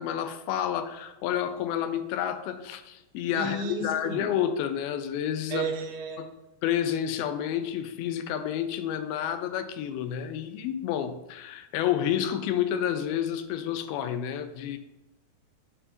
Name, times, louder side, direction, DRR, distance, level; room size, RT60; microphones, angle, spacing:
voice 1, 0.0-5.7 6.2-6.3 6.6-14.8, left 10 dB, 80° left, 10 dB, 2.3 m, -30 dB
voice 2, 3.3-4.3 5.5-6.2, right 3 dB, 80° right, 3 dB, 2.7 m, -32 dB
8.8 x 4.3 x 2.9 m, 0.97 s
omnidirectional pair, 4.5 m